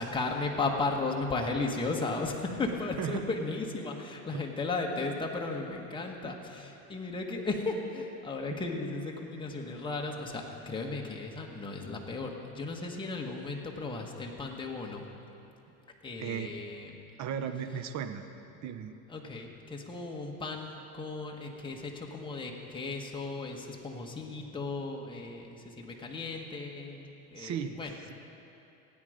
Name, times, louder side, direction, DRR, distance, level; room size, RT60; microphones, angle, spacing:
voice 1, 0.0-15.0 16.0-16.9 19.1-27.9, left 3 dB, 10° left, 0 dB, 1.4 m, -35 dB
voice 2, 16.2-16.7 17.2-18.3 18.6-19.0 27.3-27.8 28.1-28.2, right 8 dB, 45° right, 9 dB, 0.9 m, -36 dB
17.0 x 9.3 x 5.0 m, 2.8 s
supercardioid pair, 120°, 39 cm